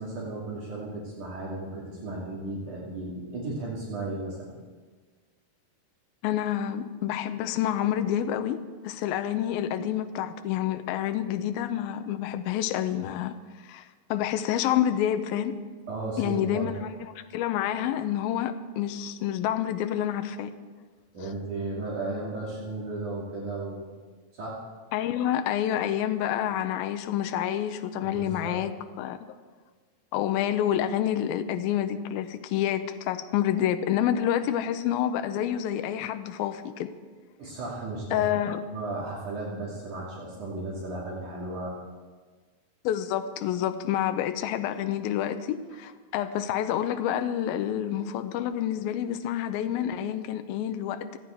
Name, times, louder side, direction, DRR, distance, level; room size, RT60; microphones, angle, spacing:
voice 1, 0.0-4.5 15.9-16.7 21.1-23.9 24.3-24.6 28.0-28.6 37.4-38.3 38.7-41.7, right 2 dB, 55° right, -5 dB, 3.8 m, -35 dB
voice 2, 6.2-8.6 8.8-13.3 13.6-15.5 16.2-20.5 24.9-29.2 30.1-36.9 38.1-38.6 42.8-51.2, left 10 dB, 80° left, 9 dB, 2.5 m, -28 dB
28.5 x 9.5 x 4.5 m, 1.4 s
omnidirectional pair, 4.2 m